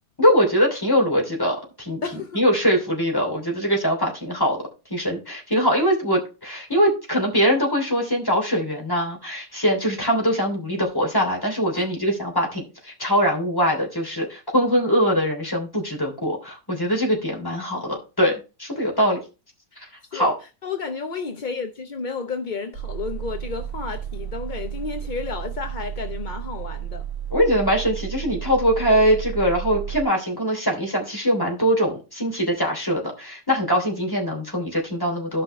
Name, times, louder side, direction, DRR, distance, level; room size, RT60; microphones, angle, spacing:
voice 1, 0.2-2.0 2.3-4.6 4.9-19.2 19.8-20.3 27.3-35.4, equal, 10° left, 3.0 m, -22 dB
voice 2, 2.0-2.4 11.7-11.9 20.1-20.3 20.6-27.0, left 5 dB, 45° left, 0.6 m, -31 dB
sound 1, 22.7-30.0, right 10 dB, 60° right, 3.6 m, -32 dB
13.5 x 5.6 x 3.2 m
omnidirectional pair, 1.9 m